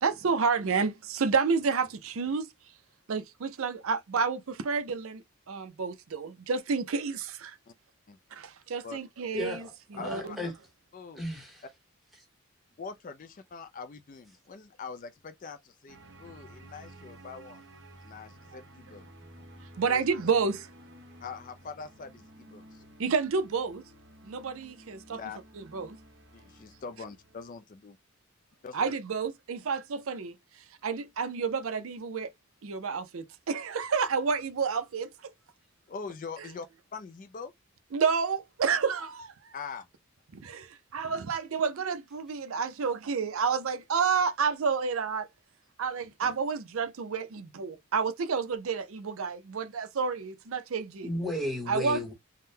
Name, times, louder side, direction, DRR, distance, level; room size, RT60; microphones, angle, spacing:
voice 1, 0.0-2.5 3.1-7.6 8.3-9.7 9.9-10.4 19.8-20.7 23.0-23.8 24.2-25.2 25.6-26.0 28.7-30.3 30.8-32.3 32.6-35.1 37.9-39.3 40.3-45.3 45.8-51.1 51.7-52.0, right 5 dB, 70° right, 0.5 m, -30 dB
voice 2, 9.3-10.5 11.2-11.6 51.0-52.1, left 1 dB, ahead, 0.9 m, -34 dB
voice 3, 10.0-10.4 10.9-11.2 12.8-17.6 18.0-19.1 19.9-20.1 21.2-22.8 25.1-25.4 26.3-28.0 28.6-28.9 35.9-36.7 36.9-37.5 39.5-39.9, left 5 dB, 35° left, 0.3 m, -43 dB
sound 1, 15.9-27.5, right 1 dB, 50° right, 1.0 m, -53 dB
3.6 x 2.1 x 2.7 m
head